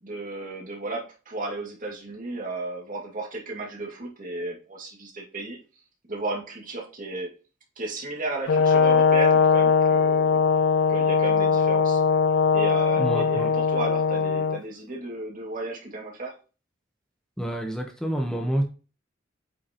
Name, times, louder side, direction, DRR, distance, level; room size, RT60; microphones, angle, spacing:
voice 1, 0.0-5.6 6.1-7.3 7.8-10.4 10.9-12.0 12.5-16.3, right 2 dB, 45° right, 0 dB, 2.2 m, -34 dB
Brass instrument, 8.5-14.6, left 5 dB, 80° left, 0.5 m, -20 dB
voice 2, 13.0-13.5 17.4-18.6, equal, 5° left, 1 dB, 1.1 m, -28 dB
8.5 x 6.0 x 3.0 m, 0.35 s
head